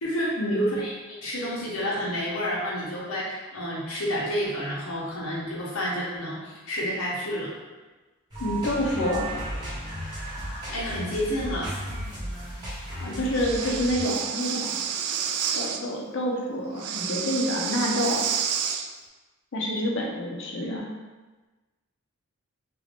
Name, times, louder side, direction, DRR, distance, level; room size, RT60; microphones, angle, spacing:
voice 1, 0.0-7.5 10.1-10.2 10.7-11.7 20.6-20.8, equal, 90° left, -6 dB, 1.0 m, -30 dB
sound 1, 8.3-14.0, right 1 dB, 20° right, 0.9 m, -35 dB
voice 2, 8.4-9.3 13.0-14.8 15.5-18.2 19.5-20.8, equal, 55° left, -1 dB, 0.6 m, -27 dB
Breathing, 13.3-15.8 16.8-18.9, right 8 dB, 85° right, 0.3 m, -29 dB
3.0 x 2.7 x 3.3 m, 1.2 s
head